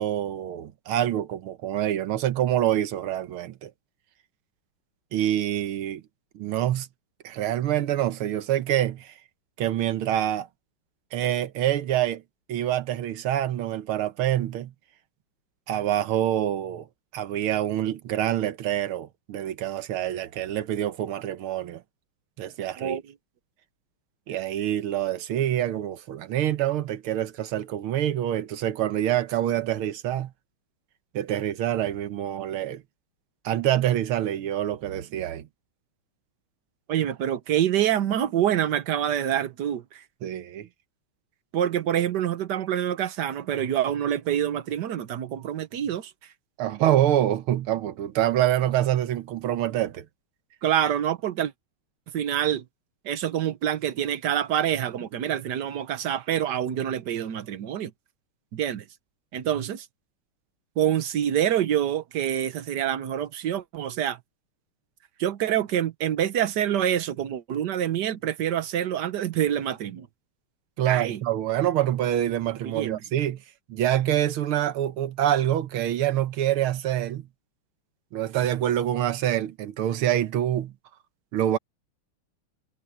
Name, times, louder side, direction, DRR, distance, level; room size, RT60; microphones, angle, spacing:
voice 1, 0.0-3.7 5.1-6.0 6.4-6.9 7.2-9.1 9.6-10.5 11.1-12.2 12.5-14.7 15.7-16.9 17.1-21.8 22.4-23.0 24.3-30.3 31.1-32.8 33.5-35.5 40.2-40.7 46.6-50.1 70.8-73.4 73.7-77.3 78.1-80.7 81.3-81.6, right 12 dB, 80° right, 1.8 m, -26 dB
voice 2, 36.9-40.0 41.5-46.1 50.6-51.5 52.1-52.6 53.0-57.9 58.5-58.8 59.3-59.9 60.8-64.2 65.2-70.1 70.9-71.2 72.6-73.0, right 10 dB, 60° right, 1.4 m, -26 dB
omnidirectional pair, 2.3 m